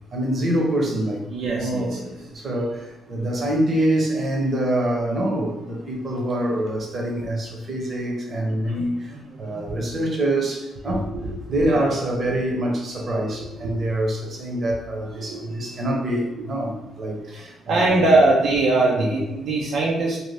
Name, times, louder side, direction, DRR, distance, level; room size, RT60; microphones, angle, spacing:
voice 1, 0.1-1.3 1.6-8.9 9.4-11.1 11.5-18.1 19.0-19.2, right 1 dB, 45° right, 0 dB, 0.8 m, -25 dB
voice 2, 1.3-2.0 8.5-9.6 10.9-11.3 11.6-11.9 13.4-13.7 15.1-15.4 17.3-20.2, right 2 dB, 75° right, -3 dB, 0.5 m, -23 dB
2.7 x 2.1 x 3.2 m, 0.95 s
cardioid pair, 90°, 0 cm